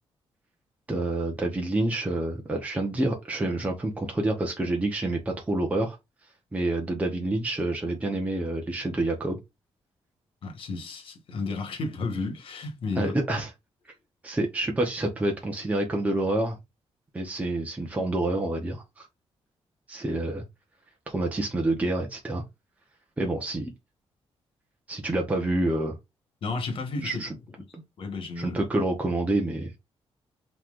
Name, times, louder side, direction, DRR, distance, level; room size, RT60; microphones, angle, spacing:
voice 1, 0.9-6.0 6.5-9.4 13.0-13.5 14.2-16.6 17.1-19.1 19.9-20.4 21.1-22.4 23.2-23.7 24.9-26.0 27.0-27.3 27.7-27.8 28.4-29.8, right 2 dB, 15° right, 0.9 m, -28 dB
voice 2, 10.4-13.2 26.4-27.2 28.0-28.6, left 3 dB, 60° left, 1.5 m, -32 dB
5.6 x 3.0 x 2.5 m
wide cardioid pair, 155°, 10 cm